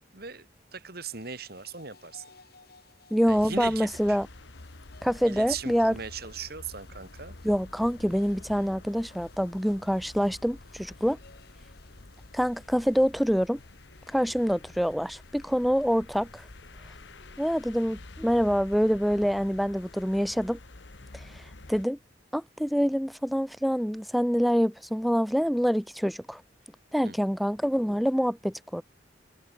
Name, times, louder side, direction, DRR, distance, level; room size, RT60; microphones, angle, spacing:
voice 1, 0.1-2.3 3.3-4.2 5.3-7.4 27.0-27.2, right 6 dB, 60° right, 4.4 m, -38 dB
sound 1, 1.1-20.2, left 4 dB, 60° left, 7.8 m, -60 dB
voice 2, 3.1-4.3 5.0-6.0 7.4-11.2 12.3-13.6 14.1-16.5 16.8-16.9 17.4-20.6 21.1-22.0 22.3-26.4 26.9-28.8, equal, ahead, 0.5 m, -26 dB
sound 2, 3.3-21.9, left 2 dB, 85° left, 1.5 m, -48 dB
head